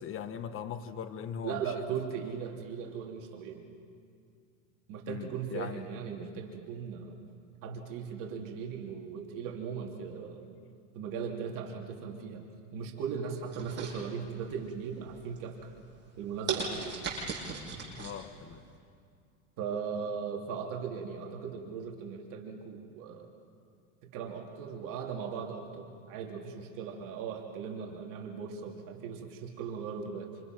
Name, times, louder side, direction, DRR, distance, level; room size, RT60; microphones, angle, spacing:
voice 1, 0.0-1.6 5.1-5.9 18.0-18.6, left 8 dB, 30° left, 10 dB, 1.3 m, -40 dB
voice 2, 1.4-3.6 4.9-7.2 7.6-10.4 10.9-12.4 12.7-15.7 16.2-16.8 19.6-23.3 24.1-30.3, right 6 dB, 45° right, 0 dB, 2.8 m, -38 dB
sound 1, 13.5-14.5 15.0-15.4 15.9-16.0 16.5-18.2 18.5-18.6, right 5 dB, 25° right, 7.8 m, -36 dB
28.0 x 28.0 x 6.1 m, 2.3 s
supercardioid pair, 130°, 43 cm